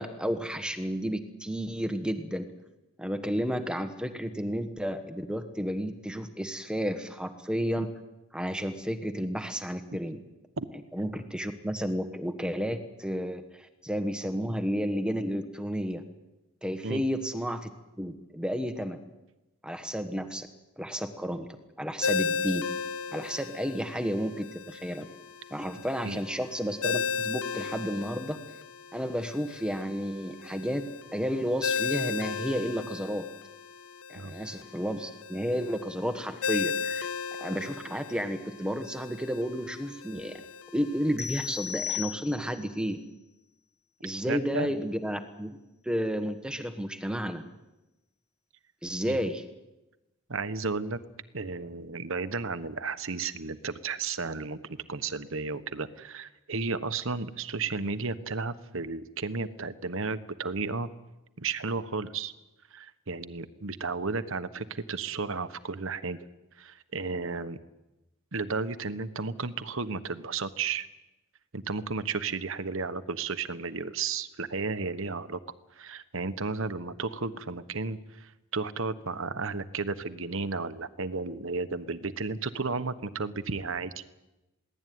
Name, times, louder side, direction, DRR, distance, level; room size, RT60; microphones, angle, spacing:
voice 1, 0.0-2.5 3.0-7.9 8.3-10.2 10.9-16.0 16.6-17.7 18.0-19.0 19.6-20.5 20.8-21.5 21.8-22.7 23.1-25.0 25.5-28.4 28.9-30.8 31.1-33.3 34.1-37.1 37.4-40.4 40.7-43.0 44.0-45.5 45.8-47.4 48.8-49.4, equal, 5° right, 7 dB, 1.4 m, -32 dB
Ringtone, 22.0-41.2, left 5 dB, 70° left, 0.8 m, -36 dB
sound 1, 41.2-42.7, left 9 dB, 30° left, 1.8 m, -35 dB
voice 2, 44.3-44.7 49.1-49.2 50.3-51.0 51.3-60.9 61.4-62.3 62.7-66.2 66.6-67.6 68.3-70.9 71.5-75.4 75.7-84.0, right 4 dB, 60° right, 13 dB, 1.2 m, -33 dB
22.5 x 17.0 x 9.4 m, 1.0 s
head